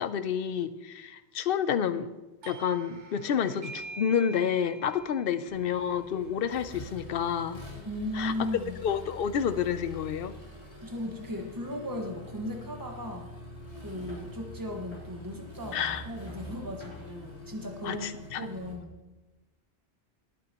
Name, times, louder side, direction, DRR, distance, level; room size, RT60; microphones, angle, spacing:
voice 1, 0.0-2.1 2.5-7.6 8.1-8.5 8.8-10.4 15.7-16.0 17.8-18.5, left 8 dB, 60° left, 12 dB, 0.8 m, -29 dB
Doorbell, 2.4-7.7, right 2 dB, 85° right, 1.3 m, -47 dB
Accelerating revving vroom, 5.5-18.7, left 1 dB, 30° left, 3.5 m, -45 dB
voice 2, 7.8-8.8 10.8-13.3 13.7-18.1 18.4-18.9, left 1 dB, 20° right, 2 dB, 1.5 m, -36 dB
19.5 x 8.9 x 3.0 m, 1.1 s
omnidirectional pair, 1.2 m